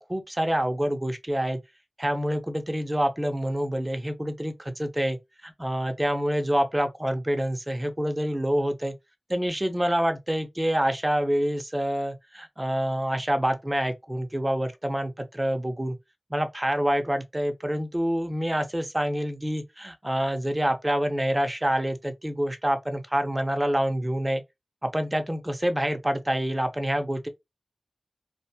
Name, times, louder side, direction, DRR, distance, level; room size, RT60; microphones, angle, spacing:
voice 1, 0.0-1.6 2.0-8.9 9.3-16.0 16.3-24.4 24.8-27.3, equal, 15° right, 0.5 m, -27 dB
2.5 x 2.2 x 2.7 m
wide cardioid pair, 70°, 0 cm